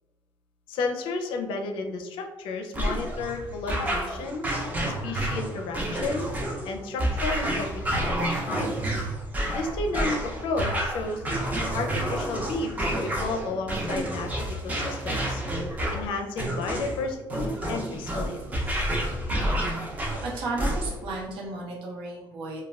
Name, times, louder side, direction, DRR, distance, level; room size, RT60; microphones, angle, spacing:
voice 1, 0.7-4.5 5.0-6.3 6.6-8.7 9.5-11.2 11.7-15.4 15.9-18.4 18.7-18.8, left 3 dB, 85° left, 3 dB, 0.4 m, -32 dB
sound 1, 2.7-21.1, right 1 dB, 20° right, 0.5 m, -29 dB
voice 2, 20.2-22.6, right 2 dB, 90° right, -2 dB, 0.8 m, -33 dB
2.3 x 2.2 x 3.2 m, 1.1 s
cardioid pair, 165°, 9 cm